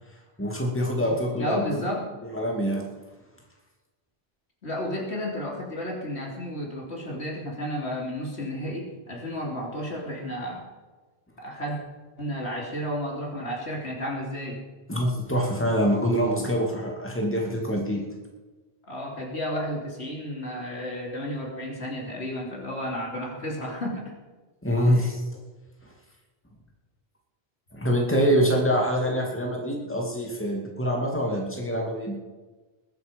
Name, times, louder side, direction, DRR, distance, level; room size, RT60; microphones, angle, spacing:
voice 1, 0.4-1.9 2.3-2.9 14.9-18.0 24.6-25.2 25.8-25.9 27.7-32.2, equal, 10° left, -1 dB, 2.5 m, -25 dB
voice 2, 1.0-2.1 4.6-10.7 11.4-11.8 12.2-14.6 18.9-24.1 24.8-25.0, equal, 90° left, -2 dB, 3.5 m, -32 dB
20.5 x 9.1 x 5.3 m, 1.2 s
omnidirectional pair, 1.1 m